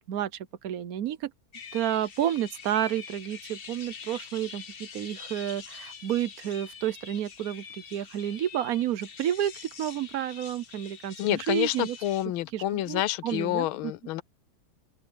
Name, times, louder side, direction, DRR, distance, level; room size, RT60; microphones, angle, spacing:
voice 1, 0.1-1.3 1.7-11.9 12.5-13.9, right 11 dB, 60° right, 0.9 m, -30 dB
sound 1, 1.5-12.3, left 6 dB, 50° left, 0.7 m, -45 dB
voice 2, 11.2-14.2, left 14 dB, 80° left, 1.4 m, -28 dB
open air
omnidirectional pair, 2.3 m